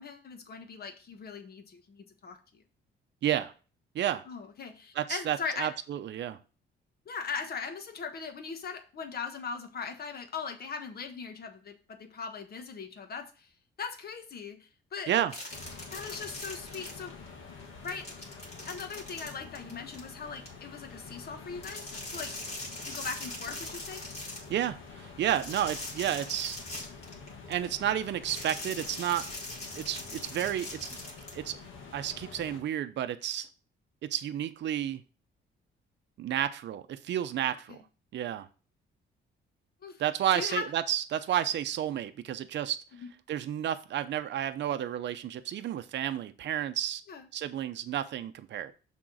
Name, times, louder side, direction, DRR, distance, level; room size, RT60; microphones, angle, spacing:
voice 1, 0.0-2.6 4.3-5.7 7.0-13.5 13.8-15.1 15.9-17.1 17.8-18.1 18.7-22.4 22.8-24.0 37.7-37.8 39.8-40.0 40.3-40.6 43.0-43.1 47.1-47.3, left 5 dB, 50° left, 7 dB, 1.3 m, -39 dB
voice 2, 3.2-3.5 3.9-4.2 4.9-6.4 15.1-15.3 24.5-26.6 27.5-29.3 29.8-31.0 31.3-31.6 31.9-33.5 34.1-35.0 36.2-37.8 38.1-38.5 40.0-42.8 43.3-47.0 47.3-48.7, right 11 dB, 65° right, 10 dB, 0.6 m, -31 dB
sound 1, 15.3-17.3 17.6-20.5 21.6-24.5 25.3-27.6 28.3-31.3, left 2 dB, 35° left, 3.2 m, -42 dB
sound 2, 15.5-32.6, left 4 dB, 90° left, 1.7 m, -48 dB
6.2 x 3.7 x 6.2 m, 0.35 s
cardioid pair, 90°, 20 cm